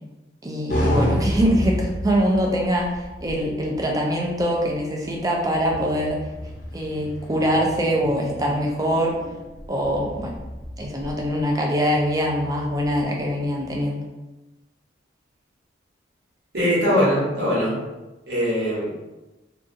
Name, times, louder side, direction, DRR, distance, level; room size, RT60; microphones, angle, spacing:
voice 1, 0.4-2.9 3.2-6.2 6.7-9.2 9.7-10.4 10.8-14.0, equal, 20° right, -1 dB, 0.4 m, -23 dB
sound 1, 0.7-13.8, equal, 50° left, 0.5 m, -31 dB
voice 2, 16.5-17.7 18.3-19.0, equal, 65° right, -8 dB, 1.2 m, -21 dB
2.6 x 2.3 x 2.6 m, 1.1 s
head